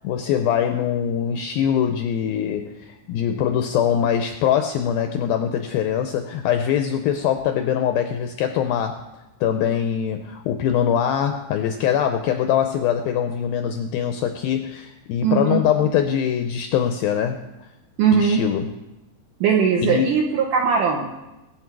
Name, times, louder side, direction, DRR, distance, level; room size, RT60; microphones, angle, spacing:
voice 1, 0.0-9.1 9.4-17.5 18.1-18.7 19.8-20.2, left 9 dB, 80° left, 6 dB, 2.1 m, -23 dB
voice 2, 15.2-15.6 18.0-18.4 19.4-21.1, right 6 dB, 75° right, 1 dB, 2.0 m, -19 dB
20.5 x 7.9 x 4.6 m, 0.97 s
omnidirectional pair, 4.9 m